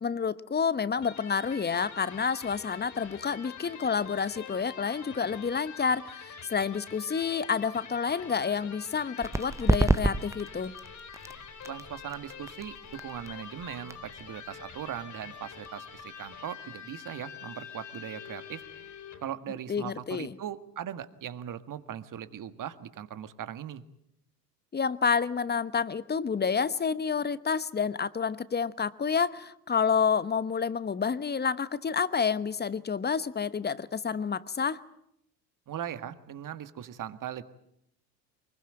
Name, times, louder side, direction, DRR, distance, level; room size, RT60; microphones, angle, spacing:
voice 1, 0.0-10.8 19.7-20.3 24.7-34.8, left 6 dB, 20° left, 16 dB, 1.1 m, -29 dB
Electric guitar, 1.0-19.3, left 7 dB, 35° left, 4.2 m, -46 dB
sound 1, 9.2-16.5, right 2 dB, 5° right, 1.1 m, -32 dB
voice 2, 11.7-18.6 19.2-23.8 35.7-37.4, right 10 dB, 40° right, 12 dB, 1.9 m, -39 dB
24.0 x 22.0 x 9.0 m, 0.76 s
hypercardioid pair, 75°, 50 cm